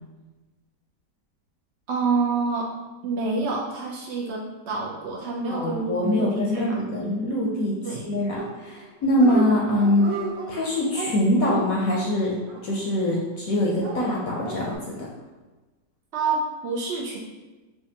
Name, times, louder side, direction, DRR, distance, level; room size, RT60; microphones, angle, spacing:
voice 1, 1.9-2.7 3.0-6.8 7.8-8.1 16.1-17.2, right 4 dB, 85° right, -2 dB, 0.6 m, -27 dB
voice 2, 5.5-7.8 8.0-10.1 10.5-12.3 12.6-15.1, left 1 dB, 65° left, -3 dB, 0.9 m, -23 dB
Dog, 8.4-8.9 9.1-9.5 9.8-13.2 13.8-14.8, right 4 dB, 65° right, 0.9 m, -34 dB
5.0 x 2.2 x 2.7 m, 1.2 s
omnidirectional pair, 1.9 m